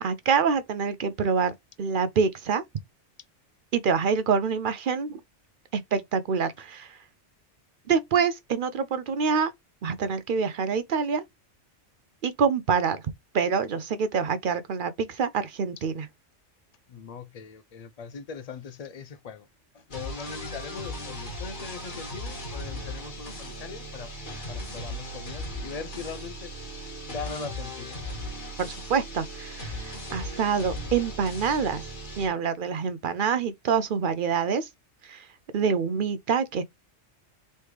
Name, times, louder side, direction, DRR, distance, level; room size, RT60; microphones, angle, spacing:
voice 1, 0.0-2.6 3.7-5.2 5.7-7.0 7.9-9.5 9.8-11.2 12.2-13.0 13.3-16.1 28.6-31.8 32.2-34.7 35.0-35.3 35.5-36.6, right 6 dB, 55° right, 0.6 m, -26 dB
voice 2, 16.9-19.5 19.7-26.5 27.1-27.9, left 5 dB, 85° left, 0.3 m, -40 dB
sound 1, 19.9-32.3, equal, 45° left, 1.8 m, -37 dB
4.2 x 3.1 x 3.2 m
omnidirectional pair, 1.2 m